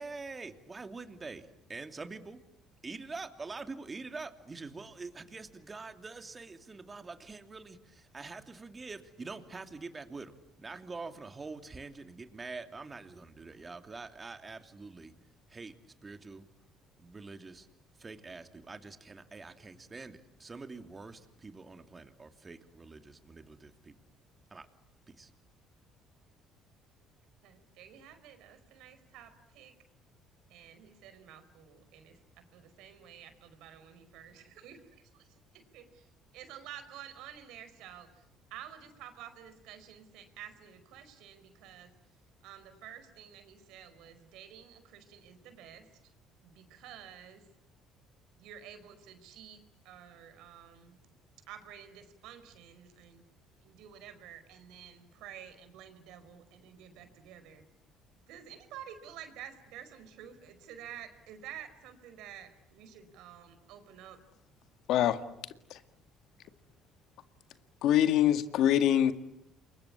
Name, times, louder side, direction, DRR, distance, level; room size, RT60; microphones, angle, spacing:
voice 1, 0.0-2.4 2.8-15.1 15.5-15.7 16.0-16.5 17.0-17.7 18.0-23.9 24.5-24.7 25.1-25.3, right 3 dB, 25° right, 7 dB, 2.8 m, -45 dB
voice 2, 27.4-29.7 30.5-38.2 38.5-41.9 42.4-46.1 46.4-47.5 48.4-51.0 51.5-53.2 53.6-57.6 58.3-64.2, right 9 dB, 80° right, 10 dB, 4.7 m, -50 dB
voice 3, 64.9-65.2 65.7-65.8 67.8-69.1, left 11 dB, 70° left, 10 dB, 1.9 m, -24 dB
28.5 x 23.5 x 8.6 m, 0.84 s
supercardioid pair, 90°, 0 cm